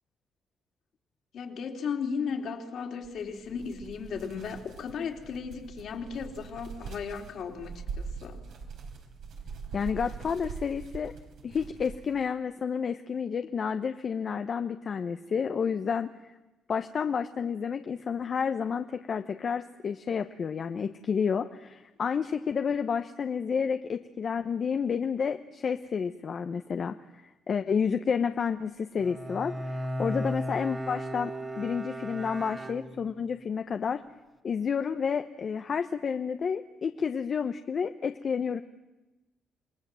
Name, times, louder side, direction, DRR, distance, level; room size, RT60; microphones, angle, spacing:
voice 1, 1.3-8.4, left 6 dB, 65° left, 3 dB, 3.5 m, -35 dB
sound 1, 3.0-12.3, right 5 dB, 70° right, 4.2 m, -43 dB
voice 2, 9.7-11.1 11.4-16.1 16.7-34.0 34.4-38.6, left 6 dB, 50° left, 7 dB, 1.0 m, -30 dB
Bowed string instrument, 29.0-33.4, equal, 20° right, 2.0 m, -35 dB
27.5 x 20.0 x 7.8 m, 1.0 s
cardioid pair, 90°, 0 cm